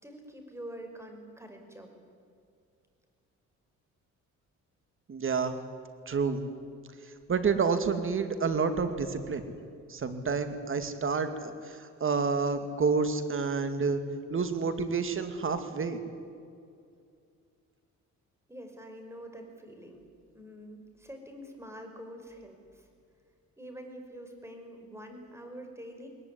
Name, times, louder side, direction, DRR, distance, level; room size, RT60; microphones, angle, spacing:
voice 1, 0.0-1.9 18.5-20.0 20.3-22.8 23.6-26.1, equal, 10° right, 4 dB, 5.3 m, -46 dB
voice 2, 5.1-5.6 6.1-6.4 7.3-9.4 9.9-14.0 14.3-16.0, right 5 dB, 45° right, 9 dB, 2.6 m, -29 dB
20.5 x 20.0 x 9.8 m, 2.4 s
cardioid pair, 90°, 30 cm